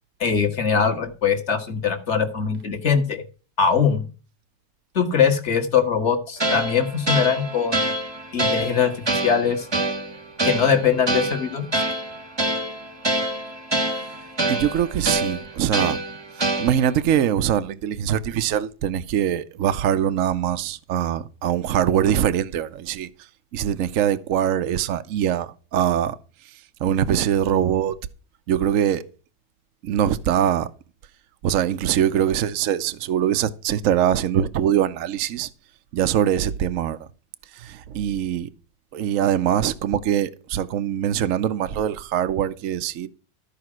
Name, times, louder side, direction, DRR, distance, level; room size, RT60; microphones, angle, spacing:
voice 1, 0.2-3.2 3.6-4.1 5.0-7.9 8.3-9.7 10.4-11.8, left 6 dB, 40° left, 1.7 m, -22 dB
sound 1, 6.4-17.0, right 2 dB, 20° right, 1.0 m, -26 dB
voice 2, 14.5-16.0 16.4-23.1 23.5-26.2 26.8-27.9 28.5-29.0 29.8-30.7 31.4-35.5 35.9-37.1 37.5-38.5 38.9-43.1, right 10 dB, 60° right, 0.9 m, -23 dB
13.5 x 5.1 x 6.1 m
omnidirectional pair, 1.9 m